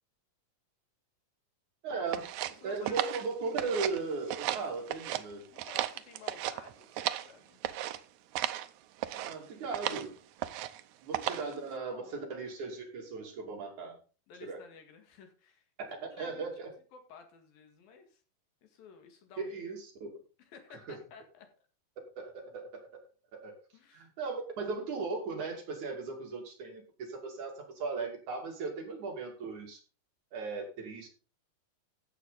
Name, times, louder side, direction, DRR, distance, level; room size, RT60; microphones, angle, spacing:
voice 1, 1.8-2.3 2.6-5.4 9.1-10.2 11.0-14.0 14.4-14.6 16.2-16.7 19.4-20.1 20.9-21.0 22.2-23.0 23.3-23.5 23.9-29.8 30.3-31.1, right 4 dB, 55° right, 0 dB, 4.0 m, -37 dB
sound 1, 2.1-4.0 4.3-5.2 5.6-7.3 7.6-8.0 8.3-8.7 9.0-9.3 9.7-10.1 10.4-10.8 11.1-11.5, right 13 dB, 80° right, 1.7 m, -34 dB
voice 2, 2.5-3.3 5.5-7.6 11.4-11.5 11.8-12.3 14.3-15.7 16.0-16.5 16.9-18.2 18.6-19.5 20.4-21.5 23.7-24.1, left 6 dB, 80° left, 5 dB, 3.7 m, -54 dB
13.5 x 8.1 x 4.1 m, 0.36 s
omnidirectional pair, 4.1 m